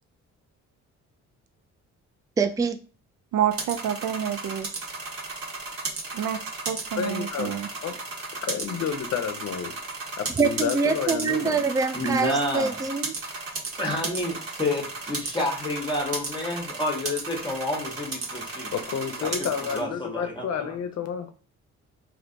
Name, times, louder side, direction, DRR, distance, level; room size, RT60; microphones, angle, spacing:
voice 1, 2.4-2.8 10.4-13.1, right 4 dB, 10° right, 0.3 m, -25 dB
voice 2, 3.3-4.7 6.1-6.4 6.7-7.7, right 10 dB, 75° right, 0.4 m, -28 dB
sound 1, 3.5-19.8, right 3 dB, 50° right, 1.0 m, -35 dB
voice 3, 7.0-7.5 7.8-7.9 8.3-9.8 10.2-11.6 18.7-21.3, left 8 dB, 60° left, 0.7 m, -30 dB
voice 4, 11.9-12.8 13.8-18.7 19.2-20.8, left 1 dB, 15° left, 0.8 m, -29 dB
3.2 x 2.7 x 2.6 m
cardioid pair, 90°, 30 cm